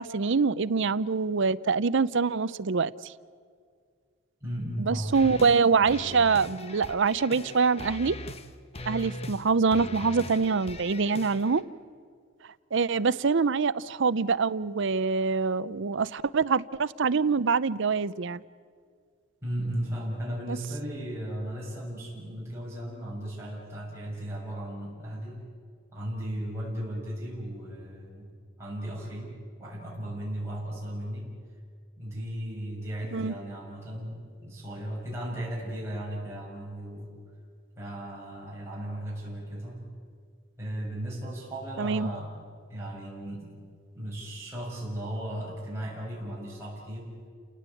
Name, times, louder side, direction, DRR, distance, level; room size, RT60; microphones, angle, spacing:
voice 1, 0.0-3.1 4.8-8.2 8.9-11.6 12.7-18.4 20.5-20.6 33.1-33.3 41.8-42.1, right 5 dB, 60° right, 17 dB, 0.6 m, -25 dB
voice 2, 4.4-5.2 19.4-25.4 25.9-28.3 28.6-31.3 32.0-37.1 37.8-39.8 40.6-42.3 42.7-43.5 43.9-47.1, right 1 dB, 15° right, -6 dB, 6.8 m, -36 dB
sound 1, 5.1-5.6 5.9-8.5 8.7-9.4 9.7-11.6, left 2 dB, 30° left, 1.2 m, -40 dB
30.0 x 18.5 x 8.5 m, 2.1 s
head